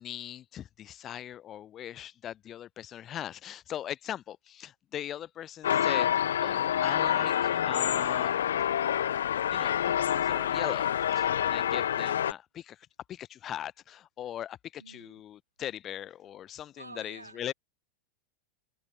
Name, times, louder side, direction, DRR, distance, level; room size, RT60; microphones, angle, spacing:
voice 1, 0.0-8.4 9.1-9.2 9.5-17.5, left 11 dB, 30° left, 0.8 m, -40 dB
sound 1, 5.6-12.3, left 10 dB, 65° left, 0.3 m, -27 dB
voice 2, 14.8-15.2 16.8-17.5, right 3 dB, 80° right, 2.6 m, -49 dB
figure-of-eight pair, 90°, 0 cm